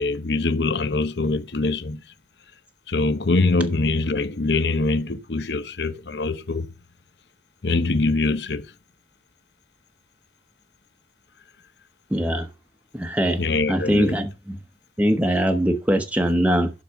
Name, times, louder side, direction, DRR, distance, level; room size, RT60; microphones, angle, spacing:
voice 1, 0.0-2.0 2.9-6.7 7.6-8.7 13.4-14.2, left 3 dB, 65° left, 0.9 m, -23 dB
voice 2, 12.1-12.5 12.9-13.4 13.7-14.6 15.0-16.7, equal, 10° right, 0.9 m, -21 dB
11.5 x 4.0 x 5.8 m
head